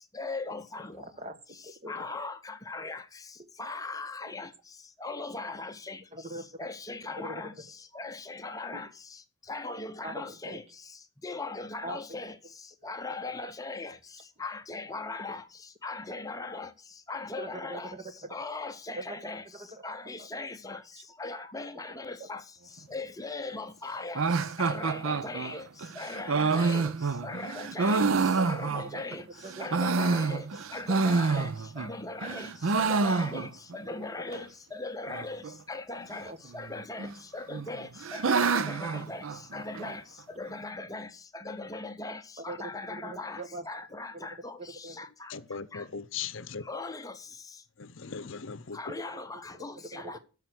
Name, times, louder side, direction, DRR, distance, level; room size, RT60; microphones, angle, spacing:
voice 1, 0.2-0.9 1.9-3.0 3.6-4.5 5.0-6.0 6.6-7.5 7.9-8.9 9.5-10.6 11.2-12.3 12.8-13.9 14.4-15.4 15.8-16.7 17.1-17.9 18.3-19.4 19.8-20.8 21.2-22.4 22.9-24.2 24.6-25.6 26.0-26.9 27.2-28.1 28.4-29.2 29.6-30.4 30.7-31.5 31.8-32.5 32.8-33.5 33.7-35.4 35.7-36.3 36.5-37.1 37.3-39.2 39.5-40.0 40.4-41.1 41.3-43.4 43.7-44.5 45.0-45.3 45.7-45.8 46.7-47.1 48.7-50.2, left 3 dB, 15° left, 0.7 m, -38 dB
voice 2, 1.0-1.4 1.6-2.1 6.1-6.7 7.2-7.4 10.0-10.6 11.8-12.2 17.4-18.1 19.0-19.2 19.5-19.9 20.2-20.3 20.9-21.0 22.2-22.3 26.6-26.7 28.3-28.5 28.7-30.5 34.3-34.4 36.3-36.4 42.5-43.7 44.1-44.3 44.6-45.1 49.1-49.2 49.7-50.2, right 2 dB, 30° right, 1.2 m, -42 dB
sound 1, 24.2-29.2 29.5-31.9 32.2-33.8 34.0-34.1 34.3-34.4 35.1-35.5 36.5-37.1 37.5-39.9, right 4 dB, 70° right, 0.6 m, -28 dB
voice 3, 45.3-46.6 47.8-48.8, left 6 dB, 60° left, 0.7 m, -38 dB
11.5 x 6.7 x 6.0 m
head